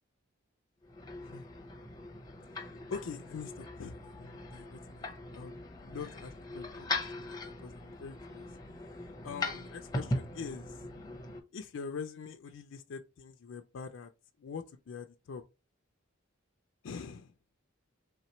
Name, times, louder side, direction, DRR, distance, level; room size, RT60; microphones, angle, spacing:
sound 1, 0.8-11.4, left 2 dB, 20° left, 0.6 m, -40 dB
voice 1, 2.7-8.5 9.2-10.8 11.5-14.1 14.4-15.4 16.8-17.3, left 5 dB, 65° left, 0.4 m, -44 dB
3.4 x 2.9 x 4.3 m
head